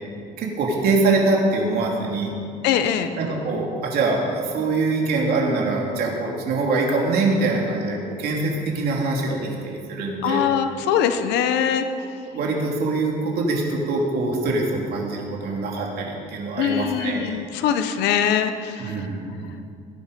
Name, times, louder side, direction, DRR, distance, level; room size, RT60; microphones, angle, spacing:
voice 1, 0.4-2.4 3.2-10.5 11.9-17.4 18.8-19.3, right 3 dB, 65° right, -1 dB, 2.7 m, -24 dB
voice 2, 2.6-3.1 10.2-11.8 16.6-19.0, left 9 dB, 90° left, 8 dB, 1.0 m, -22 dB
18.5 x 10.5 x 5.3 m, 2.4 s
cardioid pair, 110°, 17 cm